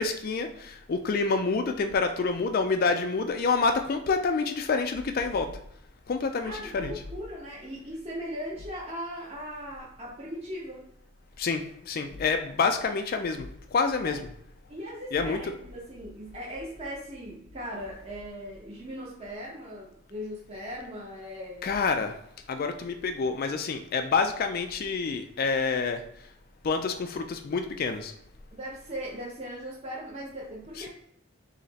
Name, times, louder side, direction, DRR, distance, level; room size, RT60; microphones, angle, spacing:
voice 1, 0.0-5.6 6.1-6.9 11.4-14.2 15.1-15.4 21.6-22.2 22.5-26.0 26.6-28.1 30.8-30.9, left 4 dB, 40° left, 6 dB, 0.3 m, -27 dB
voice 2, 6.4-10.9 14.0-14.2 14.7-21.7 28.5-30.9, equal, 25° right, -5 dB, 0.8 m, -39 dB
3.2 x 2.8 x 4.0 m, 0.74 s
head